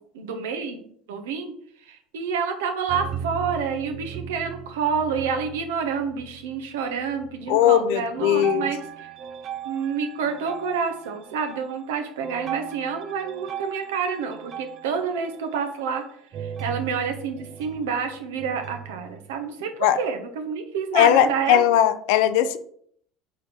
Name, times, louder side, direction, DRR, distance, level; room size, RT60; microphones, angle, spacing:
voice 1, 0.1-0.8 1.1-1.5 1.9-9.1 9.6-16.0 16.4-19.7 20.0-21.7, right 6 dB, 70° right, 6 dB, 1.0 m, -28 dB
sound 1, 2.9-6.7 7.0-7.6 8.2-19.5, right 8 dB, 45° right, 0.5 m, -38 dB
voice 2, 7.5-8.7 19.8-20.0 20.9-22.6, left 11 dB, 65° left, 11 dB, 0.5 m, -19 dB
4.8 x 4.6 x 5.1 m, 0.64 s
figure-of-eight pair, 70°, 0 cm